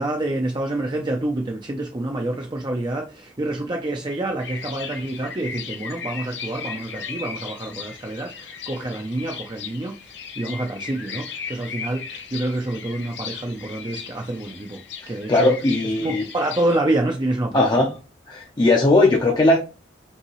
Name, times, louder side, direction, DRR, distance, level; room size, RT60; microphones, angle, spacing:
voice 1, 0.0-9.9 10.4-14.8 15.1-15.5 16.0-17.7, right 1 dB, 25° right, 0.5 m, -27 dB
sound 1, 4.4-16.8, left 6 dB, 65° left, 0.7 m, -37 dB
voice 2, 15.0-16.2 17.5-17.9 18.3-19.6, left 2 dB, 25° left, 0.6 m, -18 dB
5.4 x 2.9 x 3.0 m
head